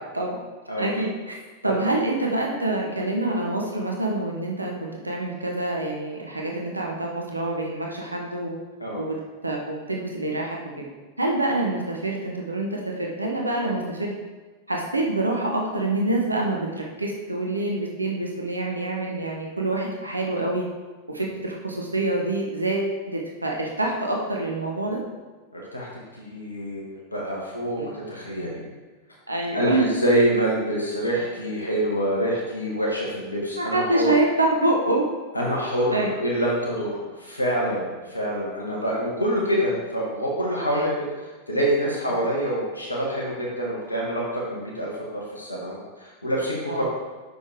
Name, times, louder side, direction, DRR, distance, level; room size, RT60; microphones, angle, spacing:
voice 1, 0.8-1.3 1.6-8.6 8.9-10.9 11.2-14.1 14.7-20.7 21.1-25.0 27.8-27.9 29.3-29.8 33.6-35.1 35.9-36.1 40.7-40.8 46.7-46.9, right 2 dB, 80° right, -1 dB, 1.1 m, -26 dB
voice 2, 25.5-25.9 26.2-28.7 29.5-34.1 35.3-40.9 41.2-46.9, equal, 80° left, -3 dB, 1.7 m, -26 dB
9.1 x 6.5 x 3.4 m, 1.3 s
figure-of-eight pair, 90°, 0 cm